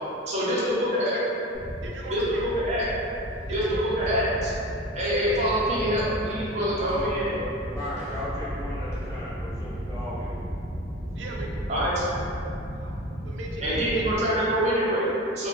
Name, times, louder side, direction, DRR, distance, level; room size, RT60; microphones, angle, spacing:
voice 1, 0.3-1.2 2.1-2.9 3.5-4.5 4.9-7.3 11.7-12.0 13.6-15.5, equal, 40° right, -7 dB, 0.6 m, -25 dB
sound 1, 1.5-14.1, equal, 60° left, 0.9 m, -34 dB
voice 2, 1.7-2.5 3.4-3.8 4.7-5.0 5.3-5.5 6.8-6.9 11.1-11.5 12.8-12.9 13.2-14.0, right 3 dB, 75° right, -1 dB, 0.3 m, -39 dB
voice 3, 6.5-10.3, equal, 20° left, -11 dB, 0.7 m, -36 dB
2.5 x 2.2 x 3.3 m, 2.9 s
head